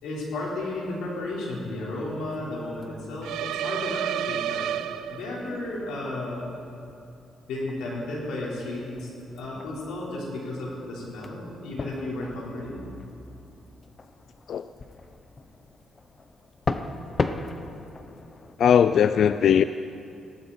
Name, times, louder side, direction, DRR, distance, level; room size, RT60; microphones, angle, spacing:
voice 1, 0.0-4.7 5.1-6.5 7.5-12.8, left 2 dB, 85° left, -4 dB, 4.5 m, -33 dB
sound 1, 2.1-18.6, left 3 dB, 35° left, 0.8 m, -39 dB
sound 2, 3.2-5.6, right 11 dB, 85° right, 0.5 m, -30 dB
voice 2, 18.6-19.6, left 8 dB, 65° left, 12 dB, 0.4 m, -19 dB
18.0 x 16.5 x 4.4 m, 2.6 s
cardioid pair, 90°, 0 cm